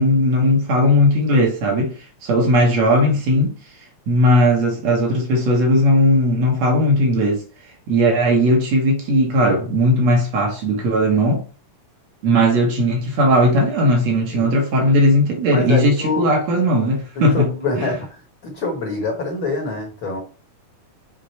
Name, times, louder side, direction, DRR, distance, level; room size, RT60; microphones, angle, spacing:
voice 1, 0.0-1.9 2.2-3.6 4.1-7.4 7.9-11.4 12.2-17.5 17.8-17.9, equal, 65° right, 2.5 m, -17 dB
voice 2, 15.5-16.3 17.1-18.1 18.4-20.2, left 3 dB, 50° left, 1.7 m, -25 dB
6.8 x 3.8 x 4.5 m
omnidirectional pair, 3.5 m